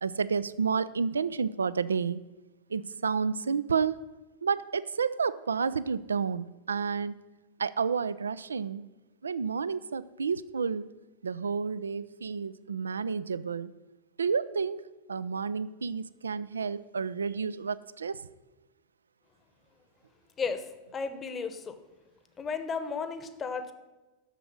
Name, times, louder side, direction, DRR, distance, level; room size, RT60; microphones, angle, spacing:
voice 1, 0.0-2.2 2.7-4.1 4.4-7.2 7.6-8.8 9.2-10.9 11.2-13.8 14.2-18.3, right 5 dB, 70° right, 18 dB, 0.3 m, -30 dB
voice 2, 20.9-21.8 22.4-23.7, left 5 dB, 20° left, 10 dB, 0.9 m, -34 dB
9.9 x 6.9 x 6.3 m, 1.1 s
figure-of-eight pair, 90°, 0 cm